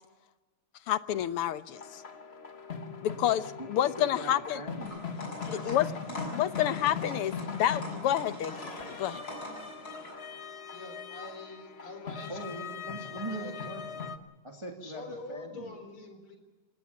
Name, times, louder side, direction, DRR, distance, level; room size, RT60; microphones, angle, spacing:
voice 1, 0.9-2.0 3.0-4.6 5.6-5.9 6.3-8.7 9.0-9.2, left 11 dB, 90° left, 13 dB, 1.9 m, -29 dB
sound 1, 1.7-14.2, left 6 dB, 35° left, 1.3 m, -40 dB
voice 2, 3.6-5.1 6.1-6.2 12.3-14.1 14.4-15.8, right 2 dB, 15° right, 2 dB, 2.4 m, -41 dB
sound 2, 4.8-10.1, left 1 dB, 55° left, 7.9 m, -43 dB
voice 3, 5.4-5.8 10.4-13.7 14.8-16.4, left 2 dB, 75° left, 7 dB, 4.8 m, -46 dB
27.0 x 18.5 x 7.2 m, 1.2 s
omnidirectional pair, 2.4 m